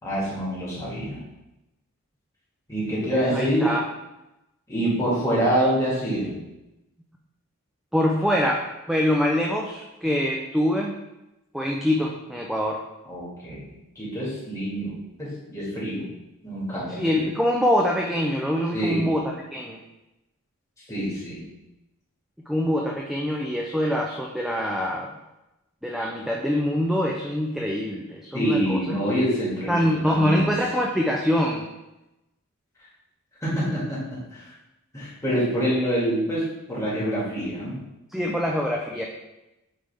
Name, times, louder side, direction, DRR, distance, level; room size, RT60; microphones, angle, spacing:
voice 1, 0.0-1.2 2.7-3.7 4.7-6.4 13.1-16.1 16.4-17.2 18.7-19.1 20.9-21.5 28.3-30.5 33.4-34.0 34.3-34.5 34.9-37.8, equal, 15° left, -8 dB, 2.2 m, -26 dB
voice 2, 3.1-3.8 7.9-10.9 11.5-12.8 17.0-19.8 22.5-25.1 25.8-29.0 29.7-31.6 38.1-39.1, equal, ahead, -1 dB, 0.4 m, -24 dB
8.9 x 3.4 x 3.4 m, 0.96 s
head